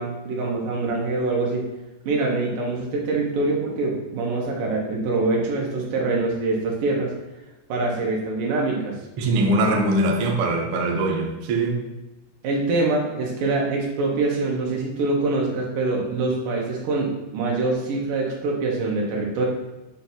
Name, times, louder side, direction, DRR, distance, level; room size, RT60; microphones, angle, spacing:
voice 1, 0.0-1.7 2.1-7.1 7.7-9.0 12.4-19.5, right 3 dB, 85° right, -1 dB, 2.8 m, -24 dB
voice 2, 9.2-11.8, right 2 dB, 70° right, 1 dB, 1.3 m, -22 dB
7.7 x 2.7 x 5.8 m, 1.0 s
omnidirectional pair, 3.6 m